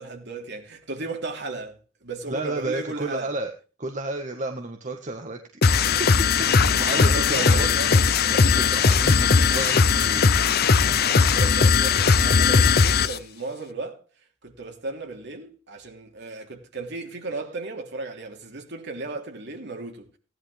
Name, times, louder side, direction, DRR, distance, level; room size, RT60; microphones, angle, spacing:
voice 1, 0.0-3.3 6.9-8.0 8.8-8.9 11.0-14.0 14.4-20.1, right 3 dB, 55° right, 3.2 m, -35 dB
voice 2, 2.3-3.5 3.8-5.8 6.5-10.8, right 2 dB, 35° right, 1.4 m, -32 dB
sound 1, 5.6-13.2, left 5 dB, 50° left, 0.7 m, -19 dB
17.0 x 11.0 x 3.4 m
head